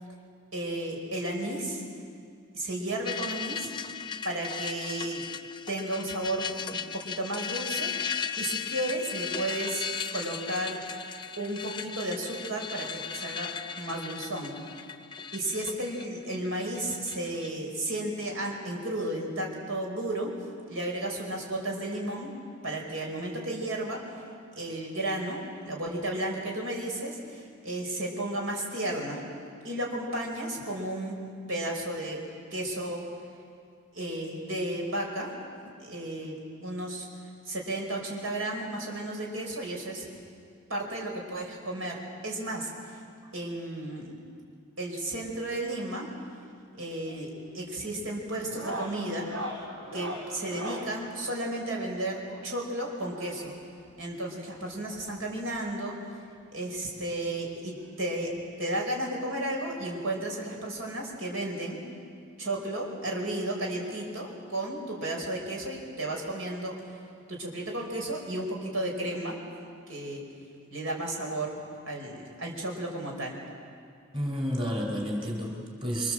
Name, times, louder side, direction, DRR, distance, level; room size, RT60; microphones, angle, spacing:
voice 1, 0.5-1.8 2.5-3.7 4.2-5.3 5.7-8.1 8.4-10.8 11.4-13.5 13.8-14.5 15.3-20.3 20.7-22.3 22.6-24.0 24.5-29.2 29.6-31.2 31.5-32.2 32.5-33.0 33.9-35.3 35.8-37.1 37.5-40.1 40.7-43.0 43.3-44.1 44.8-46.1 46.8-49.3 49.9-53.5 54.0-56.0 56.5-58.3 58.6-61.8 62.4-66.8 67.3-69.4 69.9-70.2 70.7-71.5 71.9-73.3, right 1 dB, 80° right, 0 dB, 5.2 m, -33 dB
sound 1, 3.0-17.5, left 6 dB, 20° left, 0.7 m, -36 dB
sound 2, 46.9-47.2 47.5-47.8 48.4-50.9 52.2-53.6 54.7-54.8 55.0-55.1 55.5-55.6 56.9-57.0 58.4-58.5, equal, 60° right, 7.0 m, -39 dB
voice 2, 74.1-76.1, equal, 25° right, 0 dB, 3.7 m, -30 dB
26.5 x 24.5 x 7.7 m, 2.3 s
head